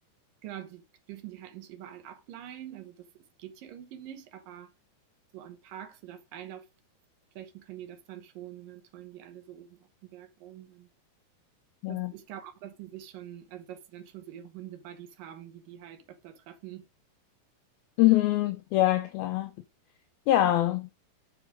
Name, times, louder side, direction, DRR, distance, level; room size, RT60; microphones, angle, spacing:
voice 1, 0.4-3.1 3.4-4.7 5.3-6.7 7.4-10.9 11.9-16.8, right 11 dB, 70° right, 2.4 m, -45 dB
voice 2, 18.0-19.5 20.3-20.9, left 15 dB, 80° left, 2.2 m, -24 dB
7.8 x 6.5 x 4.9 m
omnidirectional pair, 4.9 m